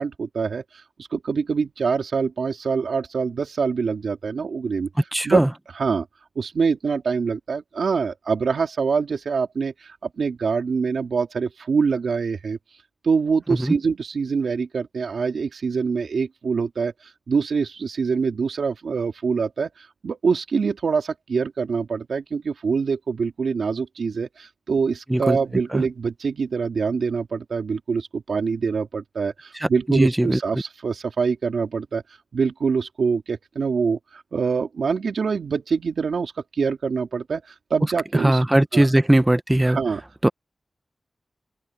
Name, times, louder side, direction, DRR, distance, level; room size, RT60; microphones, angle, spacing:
voice 1, 0.0-4.9 5.2-5.4 5.8-6.1 6.4-12.6 13.0-16.9 17.3-32.0 32.3-38.4 38.7-38.9 39.7-40.0, right 5 dB, 85° right, 2.8 m, -25 dB
voice 2, 5.1-5.5 13.6-13.7 25.1-25.4 25.7-25.8 29.5-30.4 38.1-39.8 40.2-40.3, right 1 dB, 20° right, 1.1 m, -19 dB
open air
cardioid pair, 45°, 0 cm